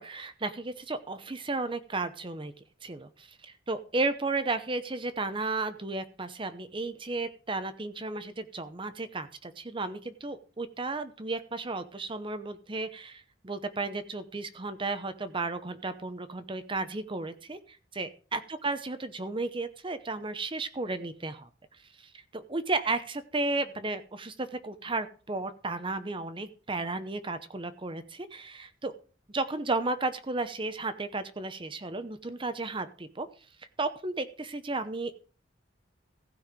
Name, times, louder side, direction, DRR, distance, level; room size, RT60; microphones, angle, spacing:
voice 1, 0.0-2.5 2.8-21.5 22.0-28.9 29.3-33.3 33.8-35.2, right 3 dB, 25° right, 11 dB, 0.8 m, -34 dB
15.5 x 5.6 x 5.0 m, 0.39 s
head